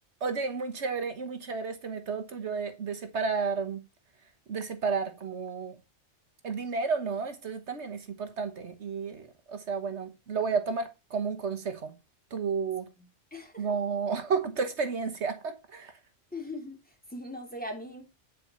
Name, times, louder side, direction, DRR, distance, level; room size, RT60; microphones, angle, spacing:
voice 1, 0.2-3.8 4.5-5.7 6.4-11.9 12.3-12.9 13.6-15.9, right 5 dB, 75° right, 1.5 m, -32 dB
voice 2, 13.3-13.7 16.3-18.0, left 1 dB, 5° left, 3.1 m, -40 dB
10.0 x 5.1 x 5.7 m
omnidirectional pair, 1.2 m